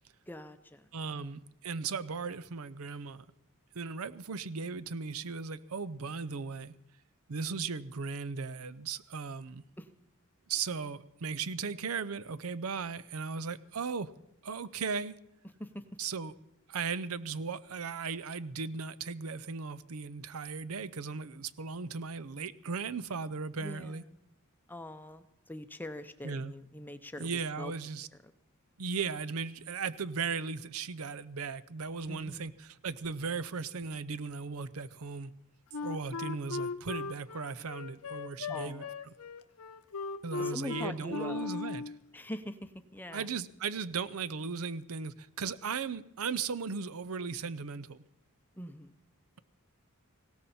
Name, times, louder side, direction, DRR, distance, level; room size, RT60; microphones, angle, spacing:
voice 1, 0.3-1.4 9.8-9.9 15.6-15.8 23.6-24.2 24.7-27.7 28.2-28.3 32.1-32.5 38.5-38.9 40.4-41.5 42.1-43.4 48.5-49.0, left 1 dB, 10° left, 0.7 m, -43 dB
voice 2, 0.9-3.2 3.7-6.7 7.3-9.6 10.5-14.1 14.4-15.2 16.0-16.3 16.7-24.0 26.2-26.5 27.2-28.1 28.8-35.3 35.8-39.1 40.2-41.8 43.1-48.0, right 5 dB, 70° right, 0.6 m, -37 dB
Wind instrument woodwind instrument, 35.7-42.0, left 4 dB, 70° left, 0.8 m, -38 dB
19.0 x 17.0 x 4.3 m
head